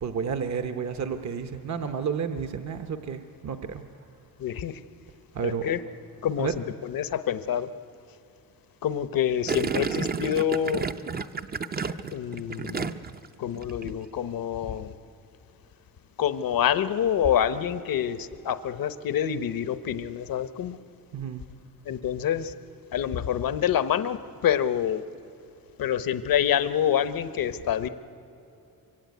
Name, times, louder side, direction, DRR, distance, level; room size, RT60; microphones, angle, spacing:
voice 1, 0.0-3.8 5.3-5.7 6.4-6.5 21.1-21.4, right 6 dB, 50° right, 7 dB, 1.0 m, -31 dB
voice 2, 4.4-4.8 5.4-5.8 6.2-6.5 6.8-7.7 8.8-10.8 12.1-12.9 13.4-14.9 16.2-20.8 21.9-22.5 22.9-25.0 25.8-27.9, left 9 dB, 70° left, 13 dB, 0.9 m, -27 dB
Gurgling, 9.5-13.3 13.5-13.9, right 5 dB, 25° right, 0.6 m, -31 dB
25.0 x 24.0 x 9.3 m, 2.8 s
wide cardioid pair, 170°, 36 cm